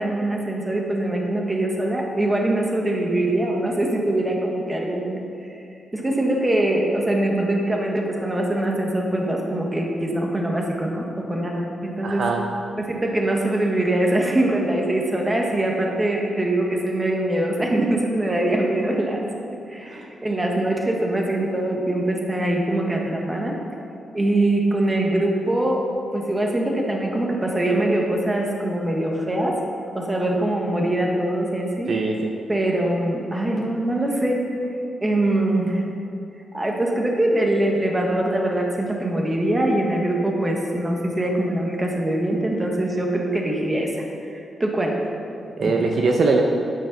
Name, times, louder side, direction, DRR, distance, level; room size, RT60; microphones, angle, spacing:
voice 1, 0.0-5.2 5.5-5.6 5.9-12.3 12.8-19.3 19.7-23.5 24.1-25.9 26.1-29.6 29.9-31.9 32.5-34.7 35.0-35.9 36.5-45.0 45.5-45.7, right 1 dB, 15° right, 0 dB, 1.2 m, -23 dB
voice 2, 12.0-12.4 19.9-20.1 31.9-32.3 45.6-46.4, right 3 dB, 55° right, 2 dB, 0.7 m, -21 dB
9.4 x 6.4 x 5.9 m, 2.6 s
wide cardioid pair, 140°, 0 cm